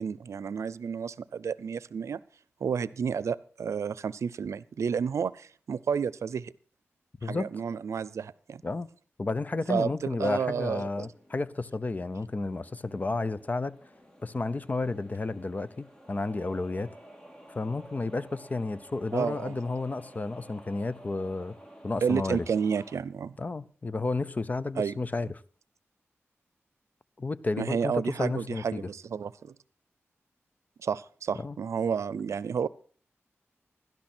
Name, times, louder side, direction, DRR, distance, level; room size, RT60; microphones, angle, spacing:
voice 1, 0.0-2.2 2.6-6.5 7.2-8.6 9.7-11.1 19.1-19.6 22.0-23.4 24.8-25.0 27.6-29.5 30.8-32.7, right 6 dB, 85° right, 0.6 m, -31 dB
voice 2, 7.2-7.5 8.6-8.9 9.2-13.8 14.2-17.0 17.5-21.5 21.8-22.5 23.4-25.3 27.2-28.9 31.4-31.6, left 3 dB, 35° left, 0.7 m, -32 dB
sound 1, 10.8-23.0, equal, 15° left, 1.9 m, -52 dB
16.5 x 12.0 x 4.4 m
wide cardioid pair, 85°, 5 cm